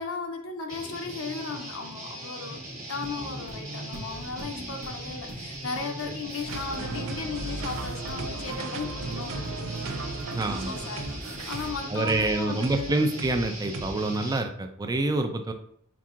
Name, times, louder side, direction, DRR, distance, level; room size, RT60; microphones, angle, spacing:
voice 1, 0.0-2.6 2.9-11.1 11.5-13.0, left 4 dB, 70° left, 4 dB, 0.6 m, -36 dB
Guitar, 0.7-14.4, right 1 dB, 35° right, 1.4 m, -40 dB
sound 1, 3.0-11.7, right 1 dB, 85° right, 1.2 m, -42 dB
sound 2, 6.5-13.9, right 3 dB, 70° right, 0.6 m, -37 dB
voice 2, 10.3-10.7 11.9-15.5, right 2 dB, 20° right, 6 dB, 0.4 m, -27 dB
5.9 x 3.7 x 2.4 m, 0.67 s
head